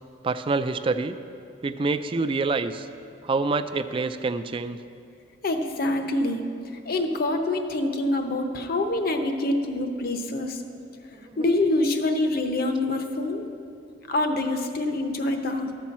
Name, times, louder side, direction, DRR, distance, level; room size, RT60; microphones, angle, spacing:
voice 1, 0.2-1.1 1.6-2.9 3.2-4.8 11.2-11.5, right 3 dB, 30° right, 10 dB, 0.3 m, -26 dB
voice 2, 5.4-6.4 6.9-10.6 11.4-13.5 14.1-15.7, left 2 dB, 55° left, 5 dB, 0.8 m, -25 dB
12.5 x 4.3 x 7.3 m, 2.5 s
head